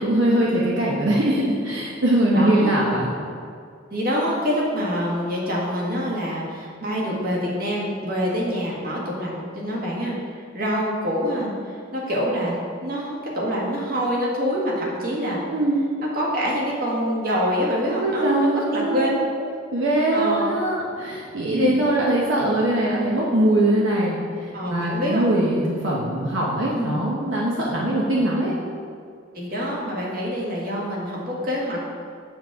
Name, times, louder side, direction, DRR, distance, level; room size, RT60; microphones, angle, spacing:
voice 1, 0.0-3.1 15.5-15.8 18.0-19.2 19.7-28.5, right 1 dB, 75° right, -4 dB, 1.0 m, -22 dB
voice 2, 2.3-2.7 3.9-15.4 16.0-19.1 19.3-19.5 20.1-20.5 21.5-21.7 24.5-25.3 26.7-27.0 29.3-31.9, equal, 50° right, -4 dB, 1.6 m, -26 dB
7.3 x 7.2 x 3.6 m, 2.3 s
head